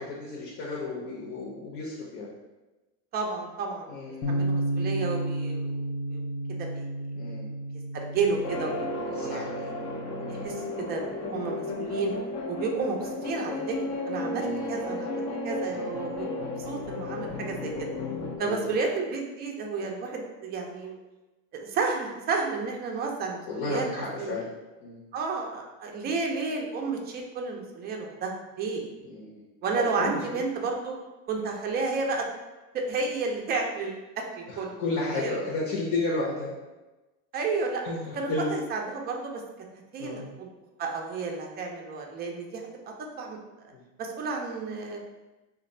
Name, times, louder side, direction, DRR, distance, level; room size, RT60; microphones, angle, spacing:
voice 1, 0.0-2.3 3.9-4.5 7.1-7.5 9.1-9.5 10.2-10.3 14.4-14.8 15.7-16.2 18.4-18.7 23.5-24.5 24.8-25.0 29.0-29.4 29.8-30.4 34.5-36.5 37.8-38.6 40.0-40.3 43.7-43.8, left 3 dB, 65° left, -5 dB, 1.0 m, -33 dB
voice 2, 3.1-4.0 4.3-5.8 6.1-6.2 6.5-6.9 7.9-9.7 10.3-12.1 12.5-13.8 14.1-17.9 18.4-20.9 21.5-24.3 25.1-28.8 29.6-31.0 31.3-32.2 32.7-34.7 35.1-35.4 37.3-39.4 39.9-40.5 40.8-42.6 43.0-43.4 44.0-45.0, right 4 dB, 25° right, 1 dB, 0.4 m, -32 dB
Bass guitar, 4.2-10.5, right 1 dB, 85° left, 0.7 m, -32 dB
sound 1, 8.4-18.4, left 2 dB, 35° left, 0.5 m, -33 dB
3.0 x 2.5 x 4.1 m, 1.1 s
supercardioid pair, 135°, 45 cm